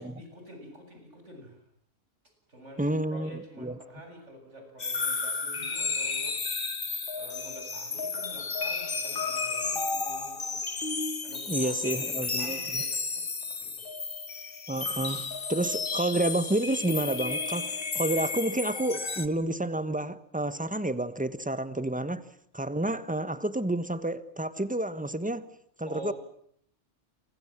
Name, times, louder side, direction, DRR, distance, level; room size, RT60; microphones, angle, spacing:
voice 1, 0.0-1.6 2.5-6.4 7.1-10.6 11.2-13.9 25.8-26.1, right 1 dB, 65° right, 8.2 m, -47 dB
voice 2, 2.8-3.8 11.5-12.8 14.7-22.2 22.5-25.4 25.8-26.1, right 1 dB, 5° right, 1.2 m, -30 dB
sound 1, 4.8-19.3, left 4 dB, 45° left, 1.7 m, -32 dB
29.0 x 24.5 x 7.5 m
omnidirectional pair, 1.3 m